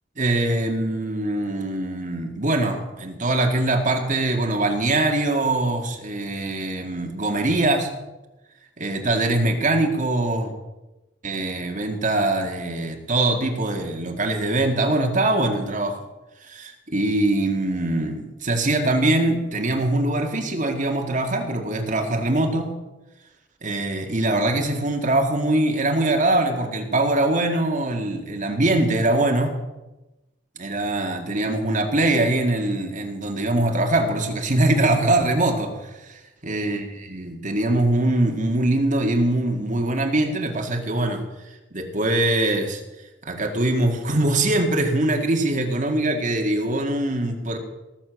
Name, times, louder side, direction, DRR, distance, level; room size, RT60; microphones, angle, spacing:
voice 1, 0.2-7.9 8.8-10.5 11.2-16.0 16.5-22.8 23.6-29.6 30.6-41.2 41.7-42.8 43.2-47.6, right 2 dB, 45° right, 3 dB, 2.0 m, -22 dB
18.5 x 7.6 x 6.3 m, 1.0 s
head